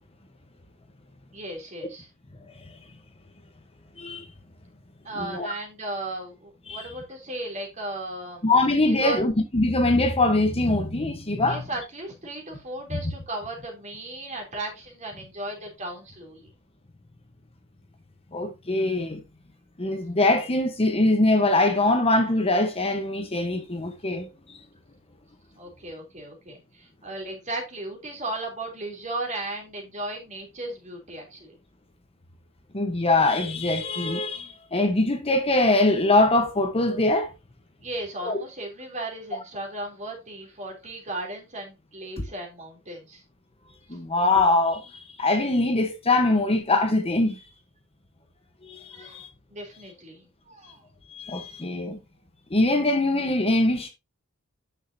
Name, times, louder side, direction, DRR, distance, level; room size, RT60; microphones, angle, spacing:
voice 1, 1.3-2.1 5.0-8.4 8.9-9.2 11.5-16.5 25.5-31.5 37.8-43.2 48.9-49.2 49.5-50.8, right 2 dB, 35° right, 3.2 m, -36 dB
voice 2, 5.2-5.5 6.7-6.8 8.4-11.6 12.9-13.0 18.3-19.2 19.8-24.3 32.7-37.3 38.2-38.4 42.2-42.3 43.9-47.4 48.6-49.3 51.1-52.0 52.5-53.9, left 2 dB, 25° left, 1.0 m, -23 dB
9.2 x 6.3 x 2.7 m
head